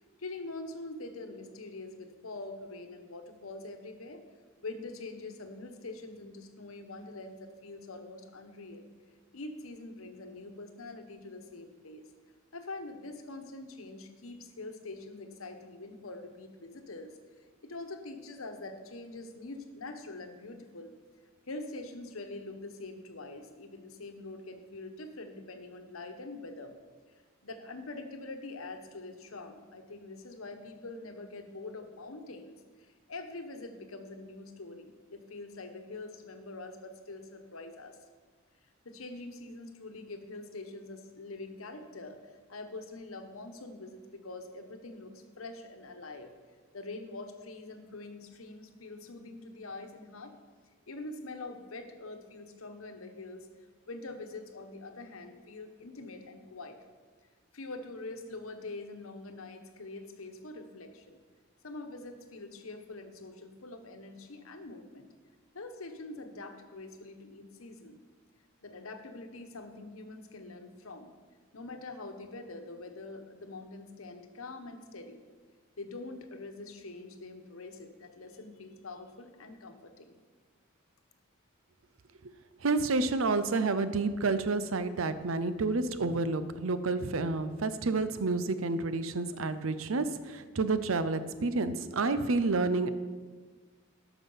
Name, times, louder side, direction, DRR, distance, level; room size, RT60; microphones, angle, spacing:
voice 1, 0.2-4.2 4.6-8.9 9.3-12.0 12.5-17.2 17.6-20.9 21.5-26.7 27.4-38.0 38.8-46.3 46.7-50.4 50.9-53.5 53.9-56.8 57.5-61.2 61.6-65.1 65.5-68.0 68.6-71.1 71.5-75.2 75.8-80.1, left 2 dB, 85° left, 6 dB, 1.1 m, -44 dB
voice 2, 82.6-92.9, right 3 dB, 75° right, 12 dB, 0.6 m, -29 dB
12.5 x 6.0 x 5.6 m, 1.4 s
head